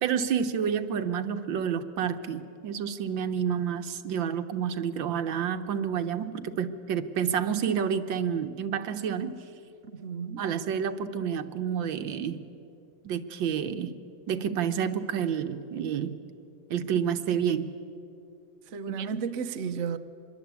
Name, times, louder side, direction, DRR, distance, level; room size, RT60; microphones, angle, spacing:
voice 1, 0.0-9.4 10.4-12.4 13.0-14.0 14.3-16.2 16.7-17.7 18.9-19.1, right 8 dB, 90° right, 1.8 m, -29 dB
voice 2, 9.9-10.4 18.7-20.0, right 6 dB, 50° right, 1.0 m, -33 dB
25.5 x 22.0 x 8.3 m
omnidirectional pair, 2.0 m